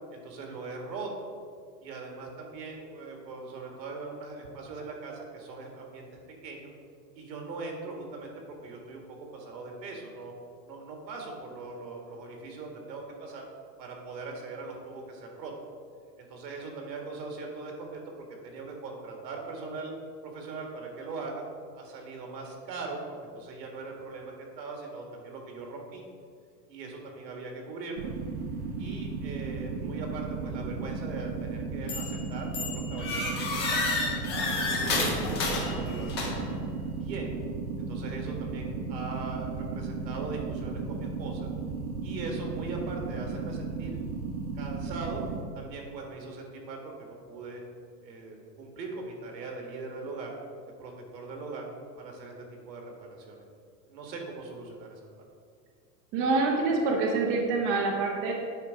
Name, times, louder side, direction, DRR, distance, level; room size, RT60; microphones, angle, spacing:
voice 1, 0.1-1.3 1.8-6.0 6.4-6.7 7.2-8.3 8.6-10.3 10.7-13.5 13.8-15.5 16.2-18.0 18.4-19.9 20.2-21.4 21.7-23.0 23.3-26.0 26.7-28.1 28.8-36.5 37.0-37.3 37.8-41.5 42.0-44.0 44.6-45.2 45.5-47.6 48.0-50.3 50.8-51.7 52.0-52.3 52.6-53.4 53.9-55.0, right 3 dB, 80° right, 1 dB, 1.9 m, -40 dB
sound 1, 28.0-45.4, right 4 dB, 65° right, 1.0 m, -35 dB
sound 2, 31.9-32.2 32.5-36.6, left 3 dB, 20° left, 0.3 m, -30 dB
voice 2, 56.1-58.3, right 3 dB, 25° right, 0 dB, 0.6 m, -26 dB
8.9 x 3.5 x 5.0 m, 2.1 s
supercardioid pair, 150°, 50 cm